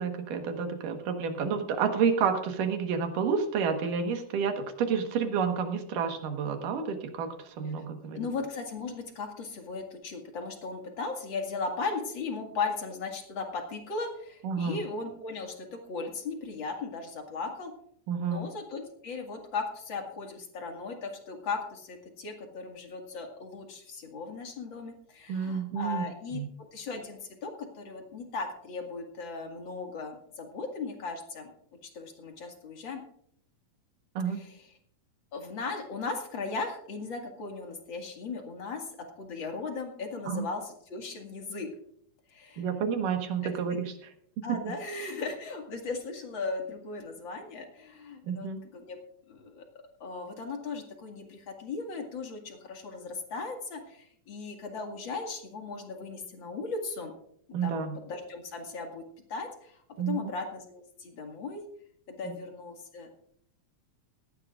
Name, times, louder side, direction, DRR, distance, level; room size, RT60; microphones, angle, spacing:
voice 1, 0.0-8.2 14.4-14.8 18.1-18.4 25.3-26.0 26.3-26.5 34.2-34.4 40.3-40.4 42.6-43.9 44.5-44.7 48.3-48.6 57.5-57.9 60.0-60.3 62.3-62.4, right 6 dB, 70° right, 5 dB, 3.0 m, -30 dB
voice 2, 8.1-17.7 18.2-26.4 26.7-31.5 31.9-33.0 34.3-34.7 35.3-38.9 39.2-41.7 42.3-42.7 43.4-43.5 44.4-49.0 49.3-49.6 50.0-57.1 57.6-59.0 59.3-59.8 60.1-61.6 62.1-63.1, left 4 dB, 40° left, 3 dB, 2.3 m, -37 dB
18.5 x 14.5 x 2.5 m, 0.67 s
omnidirectional pair, 4.1 m